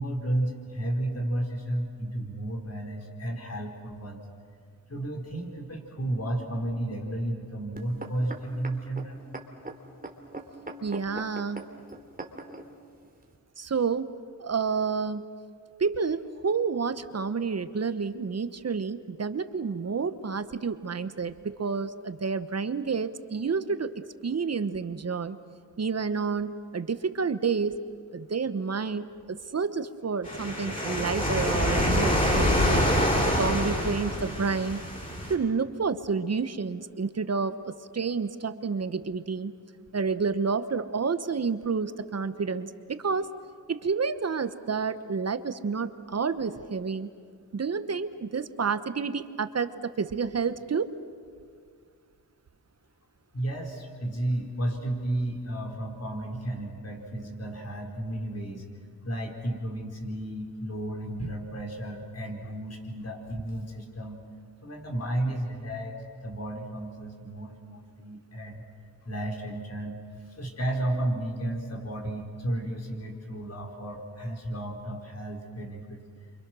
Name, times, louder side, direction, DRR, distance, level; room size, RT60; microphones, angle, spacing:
voice 1, 0.0-4.2 4.9-9.2 53.3-58.7 59.0-64.2 64.6-66.0 66.2-68.6 69.0-76.0, right 1 dB, 40° left, 1 dB, 5.1 m, -33 dB
sound 1, 7.8-12.6 13.3-13.4, right 2 dB, 25° right, 3.0 m, -41 dB
voice 2, 10.8-11.6 13.6-14.1 14.4-15.3 15.8-23.9 24.2-25.4 25.8-27.8 28.1-32.9 33.2-34.8 35.3-39.5 39.9-43.3 43.7-47.1 47.5-50.9, right 5 dB, 45° right, 12 dB, 1.1 m, -29 dB
sound 2, 30.2-35.3, equal, 20° left, 7.9 m, -26 dB
28.5 x 25.5 x 6.3 m, 2.1 s
cardioid pair, 55°, 37 cm